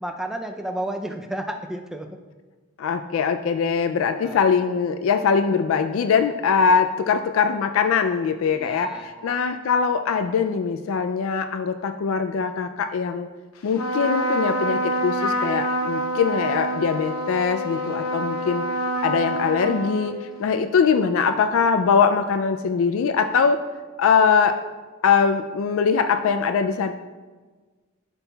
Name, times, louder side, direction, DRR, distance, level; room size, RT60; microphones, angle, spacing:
voice 1, 0.0-2.1 4.0-4.4 8.5-9.4 17.8-18.1, right 1 dB, ahead, 4 dB, 0.4 m, -32 dB
voice 2, 2.8-8.9 9.2-13.3 13.6-18.6 19.0-23.6 24.0-24.6 25.0-26.9, left 6 dB, 70° left, 7 dB, 0.3 m, -22 dB
Trumpet, 13.7-20.6, right 1 dB, 90° left, 0.8 m, -27 dB
12.0 x 5.4 x 2.3 m, 1.3 s
head